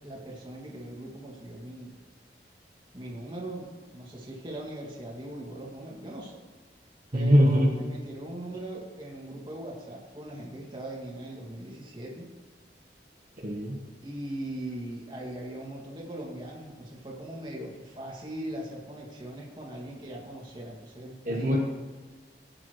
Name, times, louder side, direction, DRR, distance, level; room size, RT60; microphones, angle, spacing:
voice 1, 0.0-1.9 2.9-6.4 7.1-12.3 14.0-21.6, right 1 dB, 25° right, -3 dB, 2.3 m, -40 dB
voice 2, 7.1-7.7 13.4-13.8 21.2-21.6, equal, 45° right, -4 dB, 1.3 m, -21 dB
16.5 x 8.9 x 3.2 m, 1.4 s
head